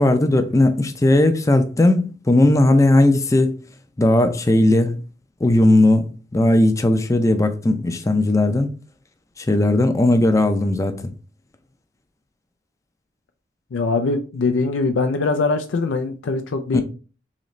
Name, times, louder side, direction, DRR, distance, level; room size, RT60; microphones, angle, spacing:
voice 1, 0.0-3.5 4.0-5.0 5.4-8.7 9.4-11.1 16.7-16.8, left 1 dB, 15° left, 0.4 m, -17 dB
voice 2, 13.7-16.8, left 3 dB, 85° left, 0.4 m, -22 dB
3.9 x 3.0 x 3.1 m
head